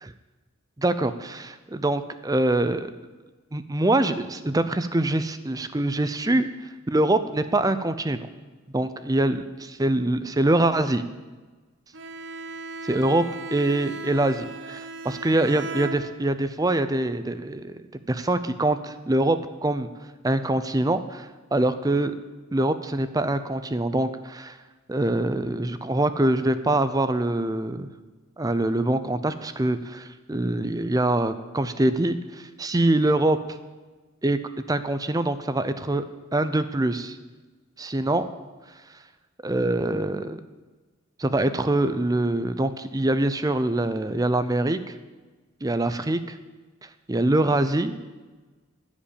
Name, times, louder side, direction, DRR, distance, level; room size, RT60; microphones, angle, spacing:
voice 1, 0.8-2.9 3.5-6.5 6.9-8.3 8.7-11.0 12.8-13.3 13.5-17.8 18.1-19.9 20.2-22.1 22.5-24.6 24.9-27.9 28.4-33.4 34.2-34.4 34.7-36.0 36.3-37.2 37.8-38.3 39.4-40.4 41.2-44.9 45.6-46.4 47.1-47.9, right 1 dB, 15° right, 12 dB, 0.5 m, -24 dB
Bowed string instrument, 11.9-16.5, right 2 dB, 60° right, 0.9 m, -37 dB
15.5 x 5.3 x 8.6 m, 1.3 s
head